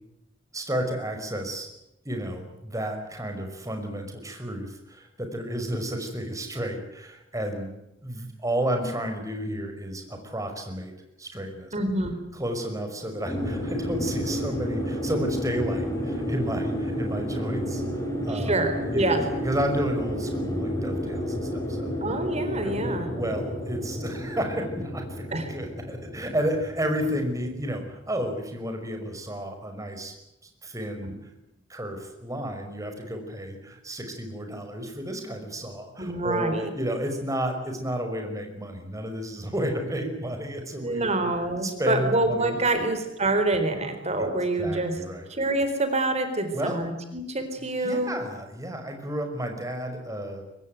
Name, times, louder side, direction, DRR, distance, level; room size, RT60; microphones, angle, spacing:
voice 1, 0.5-1.7 2.1-7.7 8.0-10.9 11.2-11.7 12.3-17.8 18.2-18.6 18.9-21.9 22.6-30.1 30.6-31.2 31.7-41.3 41.6-42.6 44.2-44.3 44.6-45.3 46.5-46.8 47.8-50.4, right 1 dB, 15° right, 5 dB, 5.5 m, -31 dB
voice 2, 11.7-12.2 18.3-19.2 22.0-23.1 25.3-25.5 31.0-31.2 36.0-36.7 40.8-44.9 45.3-48.1, right 2 dB, 35° right, 8 dB, 4.1 m, -26 dB
sound 1, 13.3-28.1, equal, 15° left, 5.5 m, -31 dB
24.5 x 20.0 x 9.3 m, 0.87 s
head